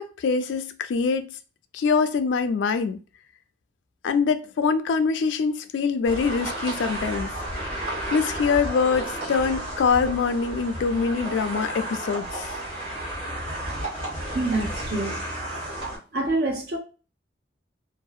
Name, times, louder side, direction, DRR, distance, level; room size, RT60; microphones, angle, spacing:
voice 1, 0.0-1.4 1.7-3.0 4.0-7.3 8.1-12.5, left 5 dB, 85° left, 0.3 m, -24 dB
sound 1, 6.0-16.0, right 1 dB, 35° right, 1.3 m, -32 dB
voice 2, 14.3-15.2 16.1-16.8, right 2 dB, 60° right, 0.7 m, -26 dB
2.6 x 2.0 x 2.3 m
head